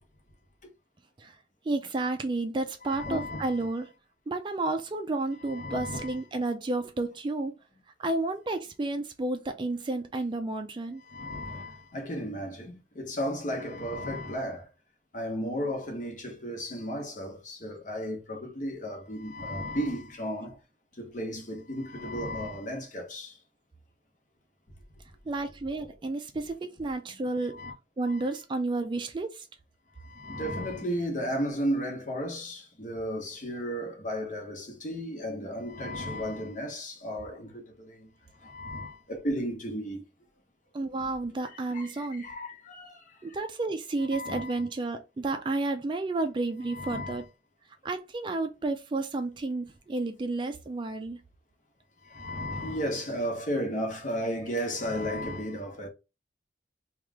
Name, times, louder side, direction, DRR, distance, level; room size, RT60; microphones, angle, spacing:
voice 1, 1.7-3.9 4.3-7.5 8.0-11.0 25.3-27.6 28.0-29.5 40.7-42.2 43.2-47.2 47.8-51.2, right 2 dB, 25° right, 0.3 m, -31 dB
voice 2, 2.8-3.7 5.4-6.2 11.0-14.7 15.1-20.6 21.0-23.4 27.1-27.2 27.5-27.7 28.1-28.3 30.0-38.1 38.4-40.0 41.4-43.2 44.1-44.6 46.6-47.2 52.0-55.9, equal, 45° left, 1.0 m, -34 dB
3.1 x 2.4 x 3.3 m
head